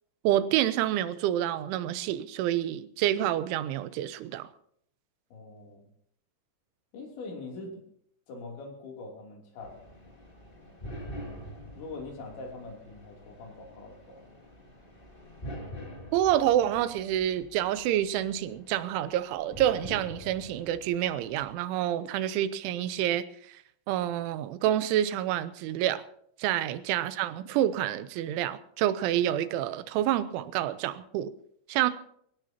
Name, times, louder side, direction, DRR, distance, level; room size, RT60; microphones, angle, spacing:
voice 1, 0.2-4.5 16.1-23.6 23.9-26.0 26.4-31.3 31.7-31.9, right 12 dB, 90° right, 3.2 m, -28 dB
voice 2, 5.3-5.8 6.9-7.8 8.3-9.8 11.7-14.2, left 3 dB, 70° left, 5.4 m, -43 dB
sound 1, 9.6-21.5, equal, 15° left, 1.9 m, -46 dB
22.5 x 17.5 x 2.9 m
omnidirectional pair, 5.4 m